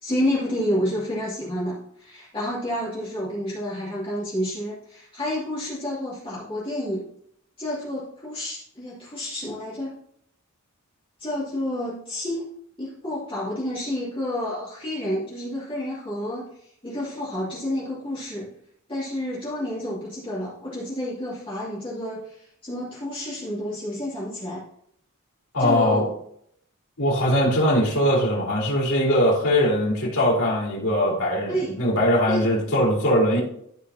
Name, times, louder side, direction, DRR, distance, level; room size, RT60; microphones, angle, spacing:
voice 1, 0.0-7.1 7.6-10.0 11.2-12.5 12.8-18.5 18.9-24.6 25.6-26.0 31.5-31.8 32.3-32.5, left 1 dB, 25° left, -9 dB, 2.6 m, -29 dB
voice 2, 25.5-26.1 27.0-33.4, equal, 85° left, -5 dB, 3.7 m, -21 dB
15.0 x 4.9 x 2.8 m, 0.68 s
head